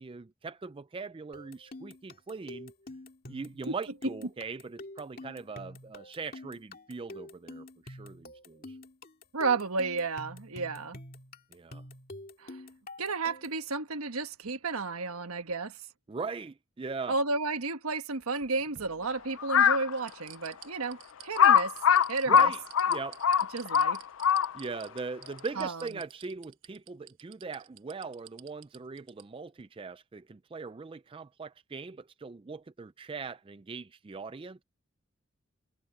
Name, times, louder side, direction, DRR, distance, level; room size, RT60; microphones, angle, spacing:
voice 1, 0.0-2.7 3.3-8.8 11.5-11.8 16.1-17.2 22.3-23.2 24.5-34.6, right 4 dB, 25° right, 0.3 m, -40 dB
sound 1, 1.3-13.6, left 1 dB, 40° left, 2.5 m, -47 dB
voice 2, 9.3-11.0 12.4-12.6 13.0-15.8 17.1-21.7 22.1-22.5 23.5-24.0 25.6-25.8, right 3 dB, 75° right, 1.3 m, -32 dB
sound 2, 18.2-19.5 20.0-29.2 29.6-29.7, right 11 dB, 55° right, 1.3 m, -50 dB
Crow, 19.4-19.9 20.5-20.6 21.4-24.8, left 8 dB, 60° left, 0.4 m, -22 dB
head